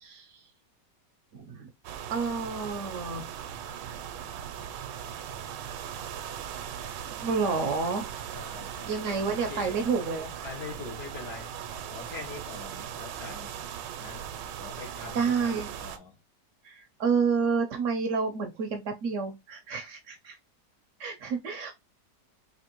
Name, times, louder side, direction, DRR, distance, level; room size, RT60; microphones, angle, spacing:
voice 1, 0.0-0.4 1.3-1.7 2.1-3.3 7.1-8.1 8.9-10.4 15.1-15.7 16.6-20.4 21.0-21.7, right 5 dB, 65° right, 0.7 m, -29 dB
sound 1, 1.8-16.0, right 9 dB, 85° right, 1.2 m, -39 dB
voice 2, 8.3-9.1 9.5-9.8 10.4-11.5 11.9-13.6 14.0-14.2 14.6-16.2, left 5 dB, 65° left, 1.9 m, -43 dB
4.3 x 2.6 x 2.9 m
omnidirectional pair, 1.9 m